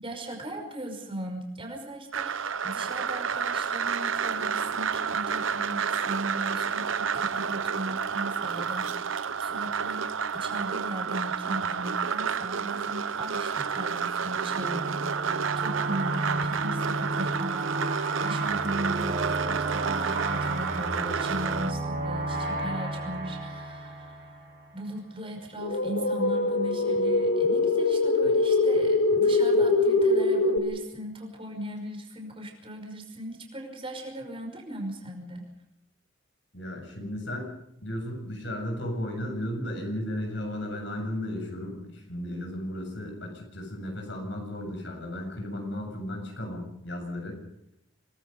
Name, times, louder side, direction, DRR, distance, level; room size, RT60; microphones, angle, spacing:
voice 1, 0.0-17.6 18.2-24.3 24.7-35.4, right 1 dB, 25° right, 3 dB, 5.6 m, -38 dB
sound 1, 2.1-21.7, right 6 dB, 75° right, 0.8 m, -30 dB
sound 2, 14.5-24.9, right 2 dB, 45° right, 6.3 m, -32 dB
sound 3, 25.6-30.6, left 2 dB, 80° left, 2.5 m, -23 dB
voice 2, 36.5-37.5 37.8-47.4, left 1 dB, 60° left, 3 dB, 7.8 m, -34 dB
27.5 x 20.5 x 5.4 m, 0.78 s
head